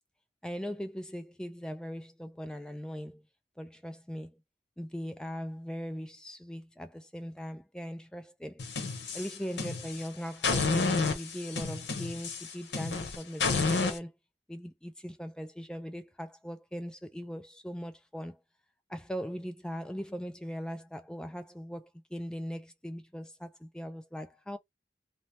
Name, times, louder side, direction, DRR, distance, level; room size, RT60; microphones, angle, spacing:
voice 1, 0.4-3.2 3.6-4.3 4.8-8.6 9.1-14.1 14.5-18.4 18.9-24.6, equal, 5° left, 0.3 m, -40 dB
sound 1, 8.6-10.0 10.4-14.0, left 4 dB, 85° left, 0.7 m, -30 dB
2.7 x 2.0 x 3.2 m
head